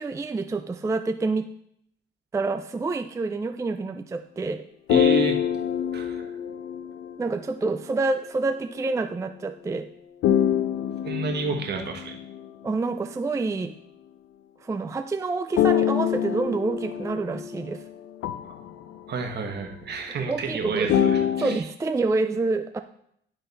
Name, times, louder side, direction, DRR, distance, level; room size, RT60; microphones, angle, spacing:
voice 1, 0.0-1.5 2.3-4.6 7.2-9.9 12.6-13.7 14.6-17.8 20.2-20.9 21.4-22.8, right 3 dB, 15° right, 8 dB, 0.3 m, -27 dB
sound 1, 4.9-7.3 10.2-12.5 15.6-19.2 20.9-21.6, left 9 dB, 85° left, 0.5 m, -25 dB
voice 2, 4.9-5.3 5.9-6.2 11.0-12.2 18.5-18.6 19.1-21.6, right 4 dB, 55° right, 3 dB, 1.3 m, -30 dB
10.5 x 3.9 x 4.0 m, 0.71 s
cardioid pair, 90°, 20 cm